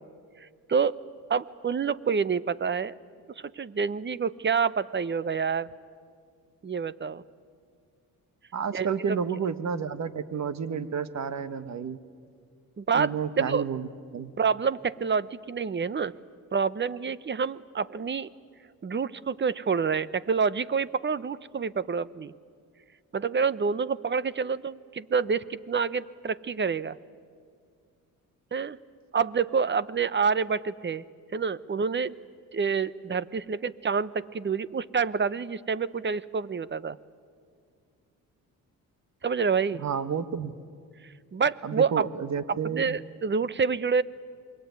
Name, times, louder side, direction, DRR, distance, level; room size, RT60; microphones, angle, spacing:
voice 1, 0.4-0.9 1.3-2.9 3.4-5.7 6.6-7.2 8.7-9.2 12.8-13.1 13.4-13.7 14.4-16.1 16.5-18.3 18.8-22.3 23.1-27.0 28.5-28.8 29.1-31.0 31.3-32.1 32.5-37.0 39.2-39.8 41.3-42.1 42.5-44.0, right 5 dB, 30° right, 18 dB, 0.9 m, -27 dB
voice 2, 8.5-12.0 12.9-14.3 39.8-40.5 41.6-43.0, right 6 dB, 50° right, 13 dB, 1.6 m, -31 dB
27.5 x 22.0 x 9.5 m, 2.1 s
cardioid pair, 80°, 34 cm